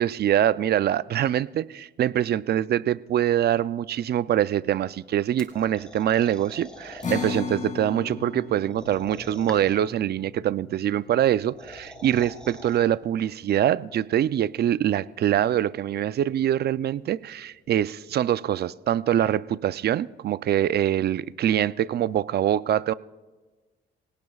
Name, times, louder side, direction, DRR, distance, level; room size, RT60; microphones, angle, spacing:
voice 1, 0.0-22.9, right 11 dB, 55° right, 17 dB, 0.5 m, -24 dB
sound 1, 5.4-7.4 8.7-9.9 11.3-12.8, equal, 5° left, 3.1 m, -43 dB
sound 2, 7.0-13.7, left 4 dB, 40° left, 2.7 m, -37 dB
26.0 x 17.5 x 2.4 m, 1.3 s
cardioid pair, 90°, 20 cm